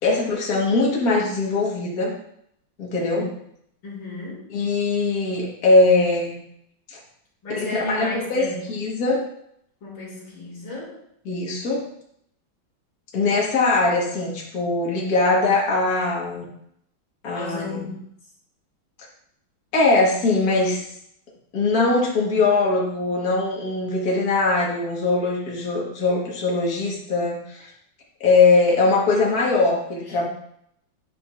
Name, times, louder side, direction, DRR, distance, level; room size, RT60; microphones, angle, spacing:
voice 1, 0.0-2.1 2.8-3.3 4.5-6.4 6.9-7.0 7.5-9.3 11.3-11.9 13.1-16.5 17.2-17.8 19.7-20.8 21.5-27.7 28.2-30.3, left 3 dB, 50° left, -3 dB, 1.9 m, -21 dB
voice 2, 3.0-3.4 3.8-4.5 7.4-8.7 9.8-11.0 17.3-18.1 30.1-30.2, left 2 dB, 70° left, -5 dB, 3.5 m, -34 dB
10.0 x 5.1 x 2.5 m, 0.72 s
omnidirectional pair, 2.2 m